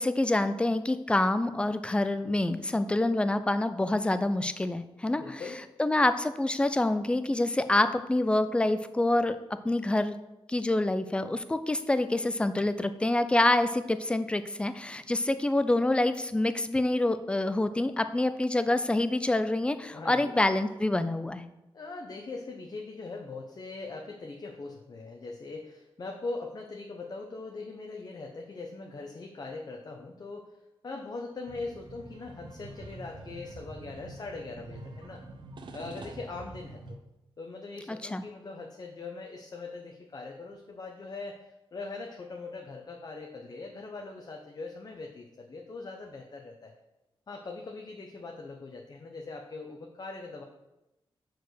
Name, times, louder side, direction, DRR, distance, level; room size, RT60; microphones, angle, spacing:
voice 1, 0.0-5.4 5.8-9.4 9.6-10.2 10.5-21.5 37.9-38.2, left 2 dB, 10° left, 11 dB, 0.4 m, -27 dB
voice 2, 5.1-5.6 19.9-20.4 21.7-30.5 30.8-35.2 35.7-37.0 37.4-41.4 41.7-46.7 47.3-50.4, left 3 dB, 40° left, 1 dB, 0.8 m, -41 dB
sound 1, 31.5-37.0, right 2 dB, 55° right, 0.8 m, -45 dB
6.9 x 4.7 x 6.3 m, 0.96 s
wide cardioid pair, 145°, 10 cm